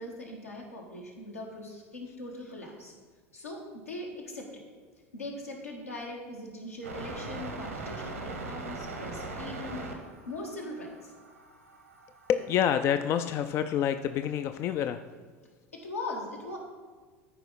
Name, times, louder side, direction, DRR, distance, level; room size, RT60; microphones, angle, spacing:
voice 1, 0.0-2.9 3.3-4.6 5.1-9.9 10.2-11.1 15.7-16.6, left 2 dB, 80° left, -2 dB, 1.6 m, -40 dB
sound 1, 6.8-12.7, right 3 dB, 80° right, 1.1 m, -41 dB
voice 2, 12.3-15.0, left 9 dB, 35° left, 10 dB, 0.3 m, -27 dB
13.5 x 4.8 x 4.0 m, 1.5 s
figure-of-eight pair, 75°, 8 cm